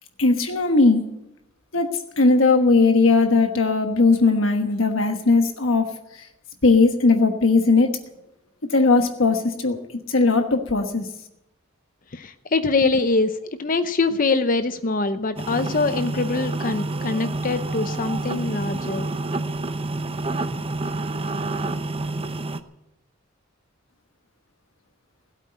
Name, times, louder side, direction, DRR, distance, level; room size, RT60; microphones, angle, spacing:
voice 1, 0.2-1.0 1.7-5.9 6.6-8.0 8.7-9.8 10.1-11.0, left 3 dB, 65° left, 5 dB, 1.3 m, -18 dB
voice 2, 12.1-19.1, left 3 dB, 40° left, 10 dB, 0.7 m, -23 dB
sound 1, 15.4-22.6, right 2 dB, 25° right, 0.7 m, -28 dB
17.0 x 8.3 x 9.6 m, 0.87 s
head